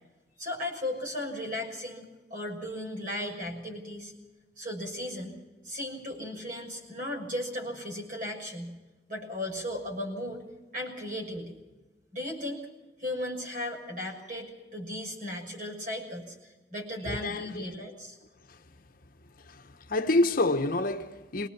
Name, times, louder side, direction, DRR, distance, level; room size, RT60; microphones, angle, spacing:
voice 1, 0.4-4.1 4.6-5.3 5.6-8.8 9.1-10.4 10.7-11.6 12.1-12.7 13.0-16.3 16.7-18.2, left 1 dB, 50° right, 6.4 m, -36 dB
voice 2, 17.1-17.7 18.5-18.6 19.5-21.5, left 2 dB, 55° left, 1.1 m, -28 dB
24.0 x 19.5 x 6.0 m
head